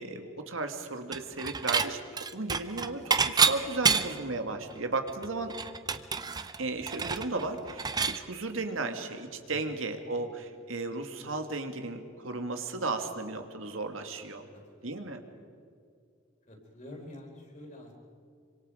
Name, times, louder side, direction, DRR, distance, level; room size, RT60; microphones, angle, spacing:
voice 1, 0.0-5.5 6.6-14.4 14.8-15.2, right 3 dB, 85° right, 6 dB, 2.0 m, -35 dB
Dishes pots and pans / Chink clink, 1.1-1.9 2.2-4.3 4.7-4.8 5.1-8.2, right 5 dB, 20° right, 0.6 m, -28 dB
voice 2, 9.5-9.8 14.5-15.0 16.5-17.9, left 1 dB, 35° left, 1 dB, 4.3 m, -48 dB
26.5 x 25.5 x 5.0 m, 2.2 s
head